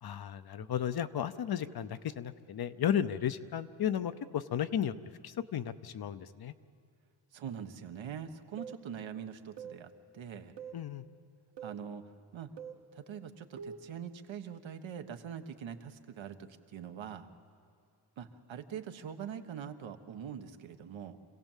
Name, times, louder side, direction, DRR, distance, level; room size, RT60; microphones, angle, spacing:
voice 1, 0.0-4.9 5.2-6.5 10.7-11.0, left 9 dB, 55° left, 12 dB, 0.8 m, -34 dB
voice 2, 7.3-10.5 11.6-12.0 12.3-12.5 12.9-16.4 16.7-17.3 18.2-21.2, right 8 dB, 80° right, 7 dB, 1.3 m, -43 dB
sound 1, 8.6-8.8 9.6-9.8 10.6-10.8 11.6-11.8 12.6-12.8 13.6-13.9, right 7 dB, 65° right, 1.4 m, -44 dB
26.5 x 16.5 x 7.4 m, 2.4 s
cardioid pair, 110°, 46 cm